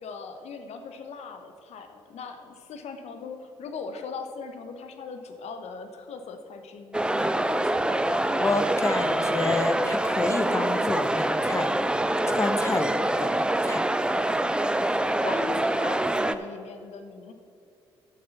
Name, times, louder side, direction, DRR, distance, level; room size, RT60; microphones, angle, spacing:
voice 1, 0.0-8.2 15.1-17.3, left 5 dB, 60° left, 7 dB, 1.0 m, -40 dB
sound 1, 6.9-16.4, right 1 dB, 5° right, 0.5 m, -25 dB
voice 2, 8.3-11.7 12.3-13.8, left 2 dB, 20° left, 7 dB, 1.1 m, -29 dB
11.0 x 6.6 x 5.8 m, 2.5 s
hypercardioid pair, 50°, 12 cm